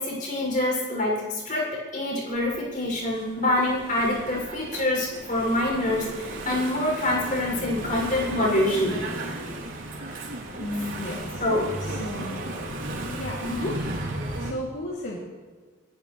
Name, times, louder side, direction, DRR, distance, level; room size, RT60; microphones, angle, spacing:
voice 1, 0.0-9.4 11.4-11.7 13.4-13.7, left 1 dB, 40° left, -2 dB, 7.1 m, -26 dB
Engine / Mechanisms, 2.4-14.5, right 1 dB, 85° right, 3.4 m, -35 dB
voice 2, 10.6-11.4 11.9-12.4 13.0-13.4 14.4-15.2, left 1 dB, 70° left, -5 dB, 3.0 m, -34 dB
28.0 x 15.0 x 3.4 m, 1.4 s
head